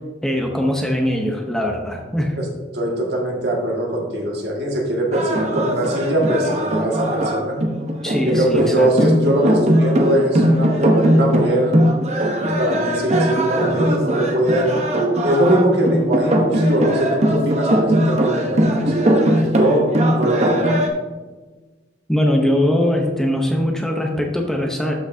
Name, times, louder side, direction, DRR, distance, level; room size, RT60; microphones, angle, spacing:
voice 1, 0.2-2.4 8.0-8.9 22.1-24.9, left 1 dB, 5° left, 1 dB, 0.7 m, -21 dB
voice 2, 2.7-7.6 8.3-11.8 12.4-14.7 15.2-20.6, right 1 dB, 65° right, -2 dB, 1.9 m, -21 dB
sound 1, 5.1-20.9, equal, 40° right, 0.9 m, -19 dB
12.0 x 5.8 x 2.7 m, 1.3 s
head